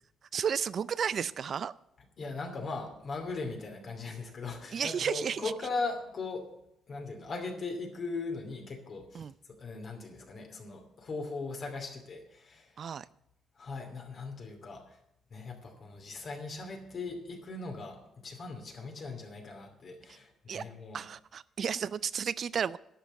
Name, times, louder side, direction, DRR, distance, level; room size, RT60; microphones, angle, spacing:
voice 1, 0.3-1.7 4.7-5.5 9.1-9.3 12.8-13.1 20.1-20.2 20.5-20.6 20.9-22.8, right 7 dB, 55° right, 18 dB, 0.4 m, -33 dB
voice 2, 2.2-6.5 6.9-9.3 9.6-12.8 13.6-15.0 15.3-21.0, left 3 dB, 50° left, 3 dB, 2.6 m, -39 dB
11.5 x 6.1 x 9.1 m, 0.82 s
cardioid pair, 90°, 0 cm